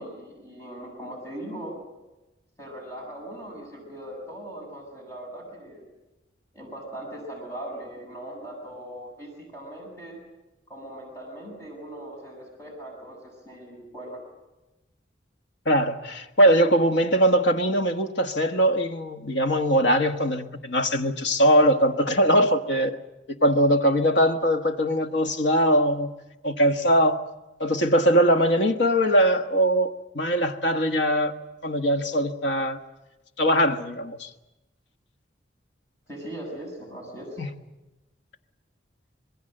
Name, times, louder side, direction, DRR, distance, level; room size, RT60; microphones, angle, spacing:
voice 1, 0.0-1.8 2.6-5.9 6.5-10.2 10.7-14.2 36.1-37.3, right 1 dB, 15° left, 7.2 m, -39 dB
voice 2, 15.6-23.0 23.4-26.1 26.4-27.2 27.6-31.3 31.6-32.8 33.4-34.3 37.4-37.5, equal, 70° left, 1.4 m, -21 dB
26.0 x 21.0 x 7.8 m
head